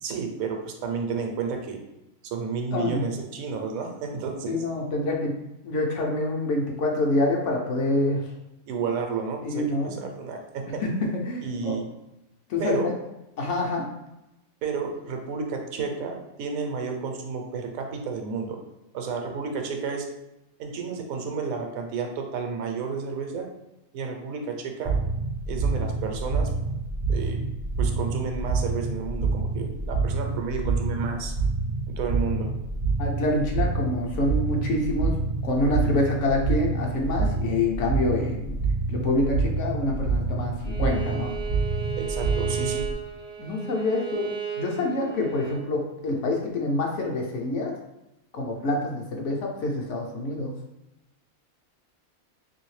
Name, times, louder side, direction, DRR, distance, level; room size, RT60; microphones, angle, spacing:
voice 1, 0.0-1.8 2.2-4.6 8.7-10.8 11.4-11.8 12.6-12.9 14.6-18.6 18.9-20.1 20.6-23.5 23.9-25.0 25.5-26.5 27.1-27.4 27.8-31.3 31.9-32.5 42.0-42.9, right 5 dB, 75° right, 3 dB, 1.0 m, -31 dB
voice 2, 2.7-3.1 4.5-5.4 5.6-8.3 9.4-10.0 10.8-11.8 12.5-12.9 13.4-13.9 33.0-38.6 38.9-41.3 43.4-47.7 48.3-50.5, left 2 dB, 65° left, 0 dB, 0.8 m, -26 dB
sound 1, 24.9-42.9, right 3 dB, 60° right, 0.6 m, -27 dB
Bowed string instrument, 40.6-45.6, right 8 dB, 40° left, 0.5 m, -34 dB
3.1 x 2.7 x 3.1 m, 0.92 s
omnidirectional pair, 1.5 m